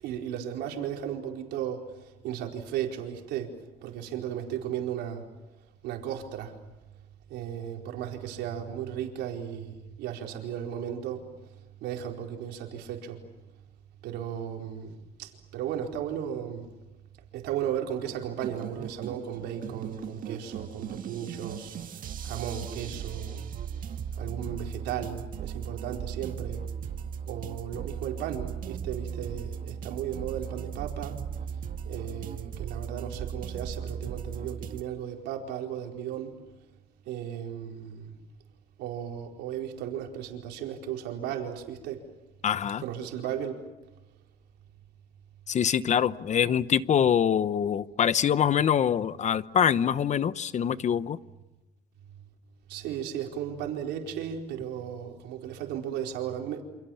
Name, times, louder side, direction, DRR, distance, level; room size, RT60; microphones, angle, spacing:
voice 1, 0.0-1.8 2.2-3.5 3.8-5.3 5.8-6.5 7.3-11.2 11.8-13.2 14.0-14.9 15.2-16.7 17.3-21.7 22.2-23.4 24.2-26.6 27.3-31.1 31.9-36.3 37.1-38.1 38.8-42.0 42.8-43.6 52.7-56.6, right 9 dB, 85° right, 4.4 m, -35 dB
sound 1, 18.2-34.8, right 7 dB, 55° right, 1.8 m, -37 dB
voice 2, 42.4-42.8 45.5-51.2, left 8 dB, 45° left, 0.9 m, -24 dB
29.0 x 27.5 x 7.2 m
cardioid pair, 110°, 17 cm